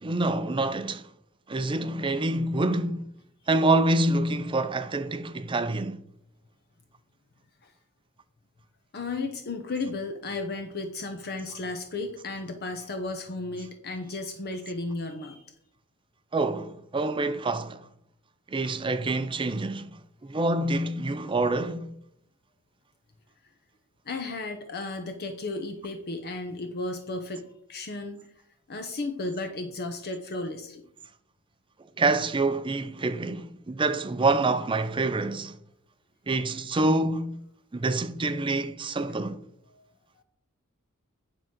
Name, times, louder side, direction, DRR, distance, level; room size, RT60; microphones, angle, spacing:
voice 1, 0.0-1.0 1.5-3.1 3.5-6.0 16.3-17.8 18.5-19.8 20.2-21.9 32.0-35.5 36.3-37.4 37.7-39.4, right 2 dB, 25° right, 0.5 m, -26 dB
voice 2, 8.9-15.5 24.1-28.3 28.7-30.8 39.7-39.8, left 3 dB, 50° left, 0.8 m, -34 dB
9.8 x 3.8 x 6.1 m
head